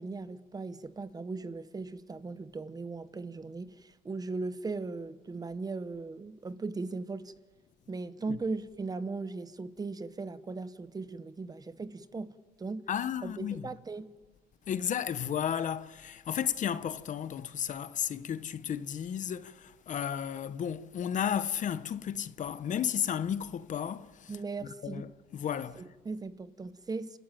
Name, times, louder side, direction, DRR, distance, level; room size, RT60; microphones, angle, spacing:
voice 1, 0.0-7.3 7.9-12.9 13.2-14.1 24.3-25.0 25.8-27.2, right 3 dB, 20° right, 1.0 m, -38 dB
voice 2, 12.9-13.7 14.7-24.3 24.8-25.9, left 9 dB, 50° left, 0.9 m, -33 dB
28.5 x 14.0 x 9.1 m
cardioid pair, 110°, 17 cm